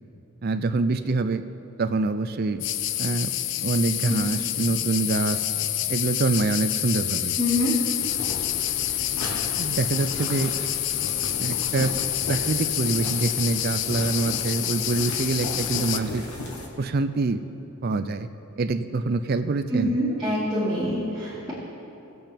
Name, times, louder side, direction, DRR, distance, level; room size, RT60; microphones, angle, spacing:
voice 1, 0.4-1.4 1.8-2.6 3.0-3.3 3.6-5.4 5.9-7.4 9.6-10.5 11.4-11.9 12.3-16.2 16.8-17.4 17.8-18.3 18.6-20.0, right 3 dB, 45° right, 9 dB, 0.4 m, -25 dB
sound 1, 2.6-16.0, left 13 dB, 55° left, 0.3 m, -28 dB
voice 2, 7.4-7.8 19.7-21.5, left 1 dB, 5° right, -16 dB, 2.5 m, -25 dB
sound 2, 8.0-16.7, left 1 dB, 80° left, 1.4 m, -36 dB
18.0 x 7.8 x 3.5 m, 2.9 s
head